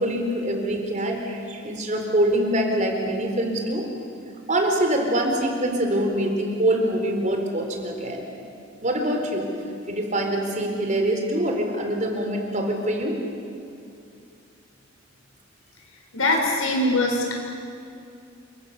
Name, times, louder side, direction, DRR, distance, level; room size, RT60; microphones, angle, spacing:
voice 1, 0.0-3.9 4.5-8.3 8.8-9.5 9.9-13.2, right 1 dB, 35° right, 2 dB, 4.1 m, -24 dB
voice 2, 16.1-17.3, left 2 dB, 90° left, 0 dB, 6.9 m, -22 dB
28.5 x 26.0 x 7.2 m, 2.5 s
head